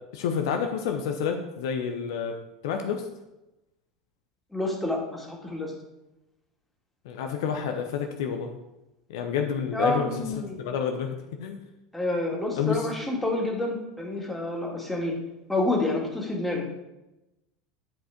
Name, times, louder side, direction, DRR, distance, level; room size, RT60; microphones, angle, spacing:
voice 1, 0.1-2.4 2.6-3.0 7.0-8.5 9.1-11.1 11.4-11.6 12.6-12.9, left 7 dB, 70° left, 5 dB, 1.0 m, -29 dB
voice 2, 4.5-5.7 9.7-10.6 11.9-15.1 15.5-16.6, left 2 dB, 5° left, -2 dB, 2.6 m, -28 dB
9.5 x 5.1 x 5.2 m, 0.97 s
hypercardioid pair, 85°, 2 cm